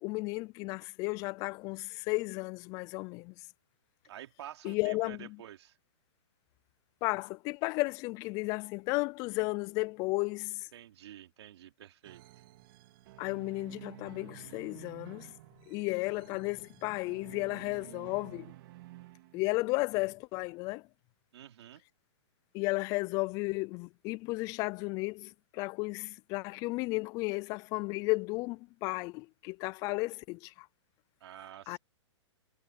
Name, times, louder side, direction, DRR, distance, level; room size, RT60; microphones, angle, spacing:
voice 1, 0.0-3.3 4.6-5.4 7.0-10.7 13.2-15.3 15.7-18.5 19.3-20.8 22.5-30.7 31.7-31.8, left 25 dB, 20° left, 0.4 m, -34 dB
voice 2, 4.0-5.8 10.7-12.2 21.3-21.8 31.2-31.8, right 11 dB, 60° right, 2.9 m, -49 dB
sound 1, 12.0-19.7, right 17 dB, 45° right, 2.9 m, -52 dB
hypercardioid pair, 145°, 16 cm